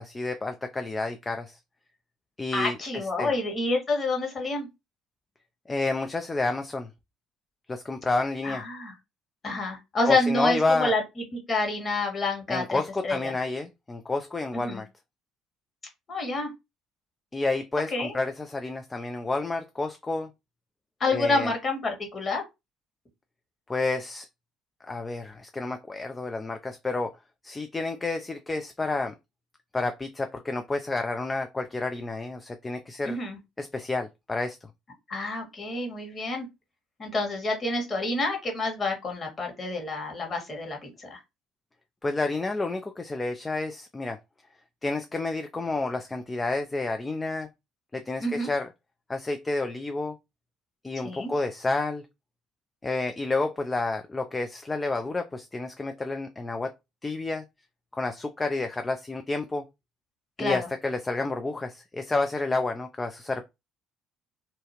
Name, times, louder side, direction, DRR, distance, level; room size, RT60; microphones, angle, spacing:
voice 1, 0.0-1.6 2.4-3.3 5.7-6.9 7.7-8.6 10.1-10.9 12.5-14.9 17.3-20.3 21.1-21.5 23.7-24.3 24.8-27.2 27.4-29.2 29.7-33.2 33.6-34.6 42.0-44.2 44.8-47.5 47.9-48.7 49.1-50.2 50.8-52.1 52.8-56.7 57.0-57.4 57.9-59.6 60.4-63.4, left 3 dB, 20° left, 0.4 m, -30 dB
voice 2, 2.5-4.7 8.4-8.9 9.4-11.0 11.3-13.3 14.5-14.8 16.1-16.5 17.9-18.1 21.0-22.4 33.0-33.4 35.1-36.5 37.0-41.2 48.2-48.5 51.0-51.3 60.4-60.7, left 2 dB, 35° left, 1.4 m, -28 dB
2.7 x 2.3 x 2.8 m
hypercardioid pair, 55°, 0 cm